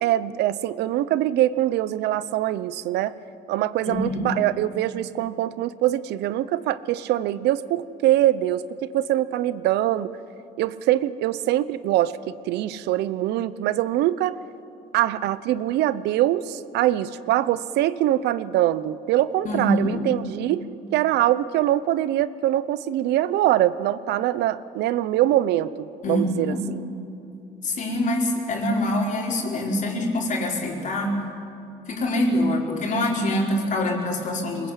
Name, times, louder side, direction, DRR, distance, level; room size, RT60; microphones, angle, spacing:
voice 1, 0.0-3.1 3.5-10.1 10.6-14.4 14.9-20.6 20.9-26.8, right 13 dB, 80° right, 16 dB, 0.8 m, -23 dB
voice 2, 3.9-4.4 19.4-20.0 26.0-26.6 27.6-31.2 31.9-34.7, left 1 dB, 50° left, -1 dB, 4.6 m, -25 dB
23.0 x 20.5 x 8.3 m, 2.7 s
cardioid pair, 110°, 17 cm